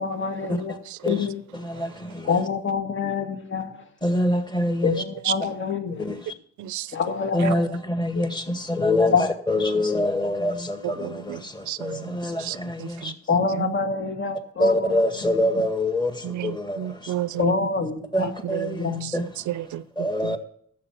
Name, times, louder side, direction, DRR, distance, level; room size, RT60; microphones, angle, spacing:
voice 1, 0.0-0.8 1.1-1.4 2.3-3.8 4.8-6.0 6.9-7.7 8.1-8.2 9.1-9.2 13.3-14.9 17.4-18.3 18.7-19.1, left 5 dB, 40° left, 1.9 m, -26 dB
voice 2, 0.9-1.2 1.7-2.0 2.2-2.3 5.2-5.3 6.6-7.0 7.4-7.5 9.1-9.2 10.8-13.8 16.2-17.7 18.2-20.4, right 13 dB, 70° right, 0.7 m, -33 dB
voice 3, 1.5-2.4 4.0-5.0 6.0-6.3 7.3-13.1 14.6-17.1 18.1-19.3 20.0-20.4, left 1 dB, 15° left, 1.9 m, -25 dB
12.5 x 7.7 x 5.9 m
cardioid pair, 90°, 30 cm